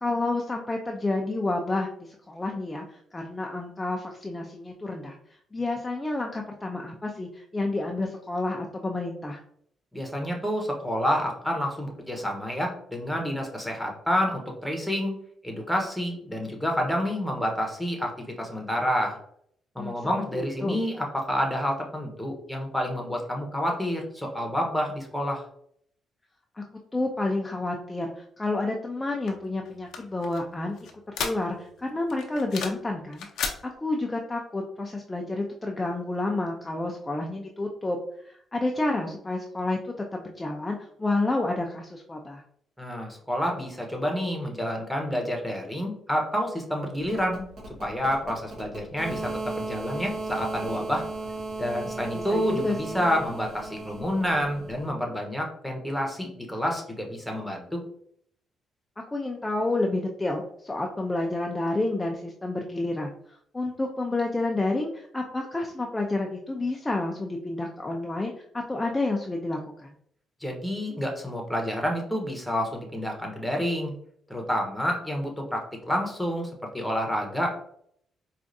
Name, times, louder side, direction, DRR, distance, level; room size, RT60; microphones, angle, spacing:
voice 1, 0.0-5.1 5.5-9.4 19.8-20.8 26.6-26.7 26.9-30.8 31.2-38.0 38.2-42.4 52.1-53.0 59.1-69.9, left 2 dB, 15° left, 1 dB, 0.5 m, -30 dB
voice 2, 9.9-15.1 15.4-19.2 19.7-25.4 42.8-47.4 47.8-51.0 51.6-57.8 70.4-73.9 74.3-77.5, equal, ahead, 1 dB, 1.0 m, -29 dB
sound 1, 29.3-31.8 32.1-32.9 33.1-33.6, left 6 dB, 75° left, 0.6 m, -34 dB
sound 2, 47.0-54.9, right 3 dB, 65° right, 1.4 m, -36 dB
4.6 x 2.4 x 2.6 m, 0.66 s
cardioid pair, 90°, 0 cm